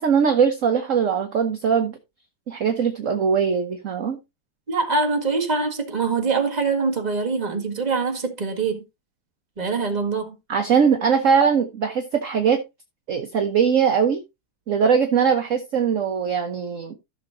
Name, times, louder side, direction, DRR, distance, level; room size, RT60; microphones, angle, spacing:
voice 1, 0.0-2.0 2.5-4.2 10.5-12.6 13.1-14.2 14.7-16.9, right 6 dB, 50° right, 1.1 m, -21 dB
voice 2, 4.7-8.8 9.6-10.3, right 4 dB, 20° right, 1.7 m, -24 dB
14.5 x 6.6 x 2.7 m
omnidirectional pair, 2.4 m